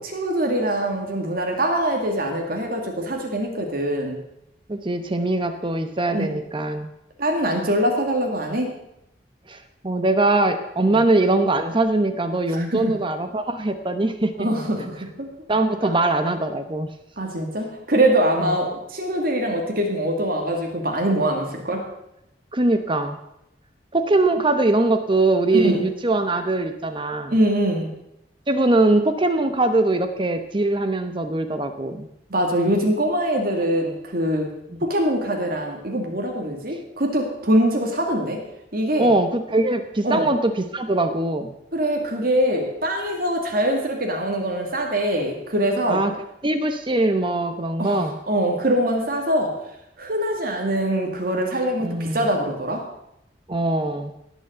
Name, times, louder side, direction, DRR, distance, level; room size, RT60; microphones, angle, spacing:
voice 1, 0.0-4.2 6.1-6.3 7.2-8.7 10.8-11.0 12.5-12.9 14.4-15.3 15.8-15.9 17.2-21.8 25.5-25.8 27.3-27.9 32.3-34.5 34.8-38.4 38.7-39.1 40.0-40.3 41.7-46.0 47.8-49.5 50.0-52.8, right 1 dB, 55° right, 1 dB, 2.3 m, -23 dB
voice 2, 4.7-6.9 9.5-14.5 15.5-16.9 18.4-18.6 22.5-23.2 23.9-27.3 28.5-32.1 39.0-41.5 45.9-46.1 46.4-48.2 51.8-52.3 53.5-54.1, right 2 dB, 30° right, 8 dB, 0.9 m, -22 dB
18.0 x 6.2 x 7.9 m, 0.83 s
head